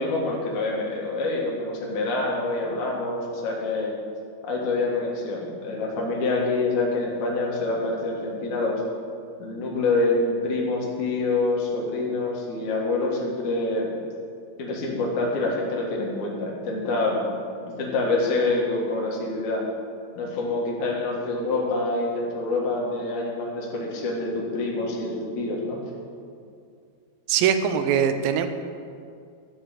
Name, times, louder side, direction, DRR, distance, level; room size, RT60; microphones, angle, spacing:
voice 1, 0.0-3.9 4.4-8.8 9.4-13.9 14.6-17.2 17.7-19.6 20.2-25.8, left 2 dB, 60° left, -3 dB, 2.8 m, -26 dB
voice 2, 27.3-28.5, right 8 dB, 80° right, 8 dB, 2.2 m, -22 dB
11.5 x 5.0 x 7.8 m, 2.3 s
omnidirectional pair, 4.4 m